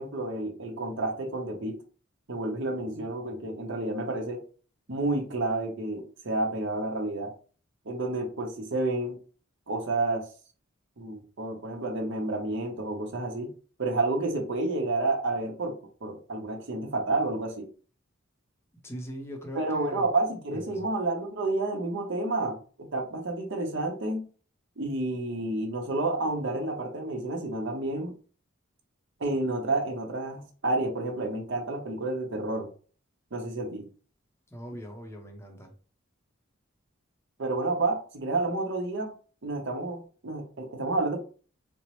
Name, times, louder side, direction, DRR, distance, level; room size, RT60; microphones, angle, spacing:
voice 1, 0.0-1.8 2.3-4.4 4.9-7.3 7.8-9.2 9.7-10.3 11.0-13.5 13.8-15.7 16.0-17.7 19.5-24.2 24.8-28.1 29.2-32.7 33.3-33.9 37.4-39.1 39.4-41.2, right 2 dB, 65° right, 2 dB, 0.8 m, -30 dB
voice 2, 18.8-20.1 20.5-20.9 34.5-35.7, equal, 15° left, 2 dB, 0.6 m, -41 dB
4.3 x 2.0 x 2.9 m, 0.39 s
head